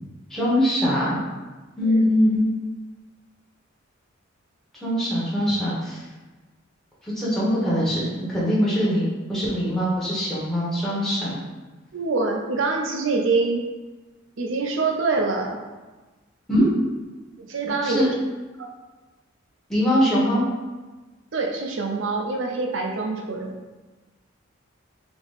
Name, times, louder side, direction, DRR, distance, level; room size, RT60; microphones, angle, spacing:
voice 1, 0.3-1.2 1.8-2.5 4.8-6.0 7.2-11.4 16.5-16.7 17.8-18.1 19.7-20.4, equal, ahead, -9 dB, 1.0 m, -22 dB
voice 2, 11.9-13.6 14.4-15.6 17.5-18.0 18.6-18.7 21.3-23.6, right 3 dB, 65° right, 2 dB, 0.6 m, -25 dB
3.5 x 2.9 x 3.9 m, 1.2 s
head